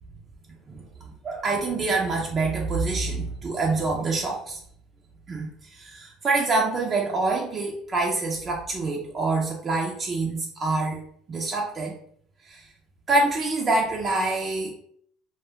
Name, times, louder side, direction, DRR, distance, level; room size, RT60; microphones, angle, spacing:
voice 1, 1.2-4.6 5.3-11.0 11.3-11.9 12.4-12.7 13.1-14.7, right 3 dB, 35° right, -2 dB, 0.5 m, -26 dB
2.2 x 2.1 x 3.5 m, 0.64 s
supercardioid pair, 105°, 0 cm